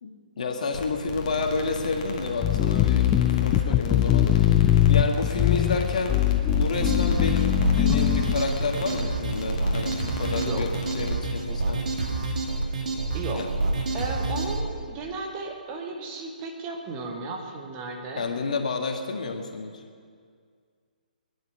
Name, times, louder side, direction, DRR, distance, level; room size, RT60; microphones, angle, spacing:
voice 1, 0.0-3.1 3.4-10.7 10.9-11.8 13.3-13.5 18.2-19.8, left 4 dB, 55° left, 4 dB, 1.8 m, -30 dB
sound 1, 0.7-11.2, left 2 dB, 35° left, 1.9 m, -35 dB
sound 2, 2.4-8.4, left 12 dB, 15° left, 0.5 m, -22 dB
sound 3, 6.5-14.6, right 2 dB, 55° right, 2.2 m, -28 dB
voice 2, 10.3-10.7 13.1-13.5 13.9-18.3, right 3 dB, 25° right, 2 dB, 1.8 m, -34 dB
21.5 x 10.5 x 5.8 m, 2.1 s
figure-of-eight pair, 130°, 5 cm